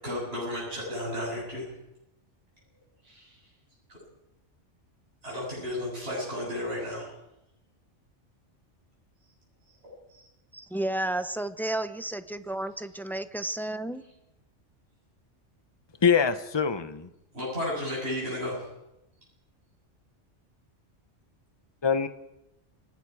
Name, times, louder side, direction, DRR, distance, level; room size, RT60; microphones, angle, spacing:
voice 1, 0.0-1.7 3.0-3.4 3.9-4.0 5.2-7.1 9.8-10.3 17.3-18.6, left 1 dB, 55° right, -5 dB, 8.1 m, -33 dB
voice 2, 10.5-14.1, right 1 dB, ahead, 11 dB, 0.6 m, -32 dB
voice 3, 16.0-17.1 21.8-22.1, left 6 dB, 25° left, 10 dB, 0.9 m, -24 dB
29.5 x 18.5 x 4.9 m, 0.88 s
omnidirectional pair, 1.2 m